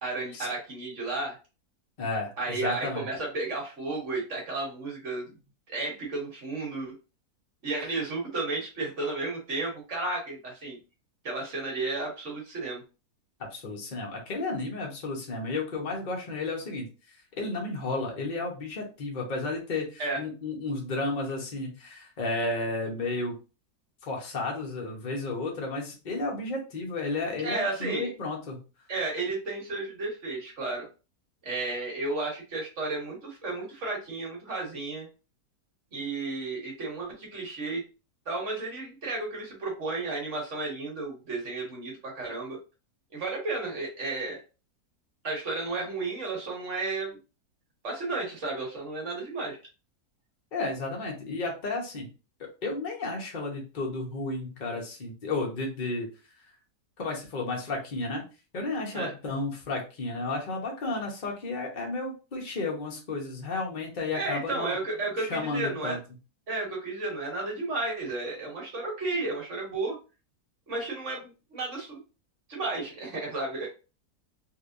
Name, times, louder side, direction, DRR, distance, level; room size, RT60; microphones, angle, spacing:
voice 1, 0.0-1.4 2.4-5.3 5.7-6.9 7.6-10.8 11.2-12.8 20.0-20.2 27.4-28.1 28.9-30.9 31.4-35.1 35.9-37.8 38.3-42.6 43.1-44.4 45.2-47.2 47.8-49.6 58.9-59.1 64.1-66.0 66.5-70.0 70.7-72.0 72.5-73.7, right 3 dB, 50° right, -1 dB, 1.3 m, -33 dB
voice 2, 2.0-3.1 13.4-16.9 17.4-23.3 24.0-28.6 50.5-52.1 52.4-56.1 57.0-58.2 58.5-64.8 65.2-66.0, left 3 dB, 35° left, 0 dB, 0.9 m, -32 dB
3.3 x 2.8 x 2.5 m, 0.31 s
omnidirectional pair, 1.7 m